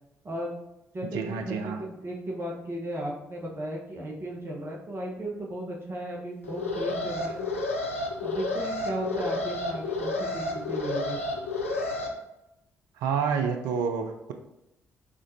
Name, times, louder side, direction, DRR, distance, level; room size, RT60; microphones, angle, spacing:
voice 1, 0.2-0.6 0.9-7.5 8.2-11.2, right 1 dB, 35° right, -2 dB, 1.2 m, -35 dB
voice 2, 1.1-1.8 13.0-14.3, right 6 dB, 65° right, 5 dB, 0.4 m, -28 dB
Alarm, 6.4-12.1, left 2 dB, 90° left, 0.4 m, -31 dB
5.0 x 3.6 x 2.8 m, 0.91 s
figure-of-eight pair, 45°, 7 cm